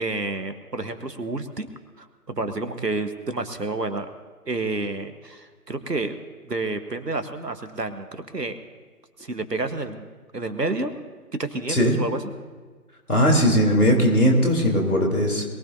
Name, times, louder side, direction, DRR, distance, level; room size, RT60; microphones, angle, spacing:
voice 1, 0.0-1.7 2.0-4.1 4.5-6.1 6.5-8.5 9.2-10.0 10.3-10.9 11.4-12.2, right 2 dB, 85° right, 8 dB, 1.5 m, -29 dB
voice 2, 13.1-15.4, equal, 65° left, 0 dB, 3.7 m, -19 dB
22.0 x 16.5 x 2.8 m, 1.5 s
figure-of-eight pair, 155°, 47 cm